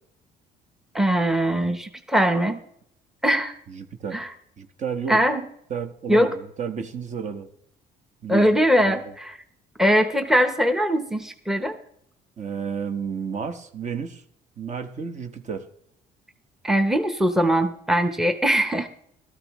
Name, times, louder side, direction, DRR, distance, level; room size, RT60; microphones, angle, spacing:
voice 1, 0.9-2.6 3.2-3.5 4.1-4.3 5.1-5.4 6.1-6.3 8.3-9.4 9.8-11.8 16.6-18.9, equal, ahead, 8 dB, 0.9 m, -21 dB
voice 2, 3.7-4.2 4.6-5.2 5.7-7.5 8.2-8.5 8.8-9.1 12.4-14.2 14.6-15.7, right 6 dB, 45° right, 7 dB, 1.1 m, -31 dB
15.5 x 13.0 x 3.1 m, 0.69 s
cardioid pair, 110°, 17 cm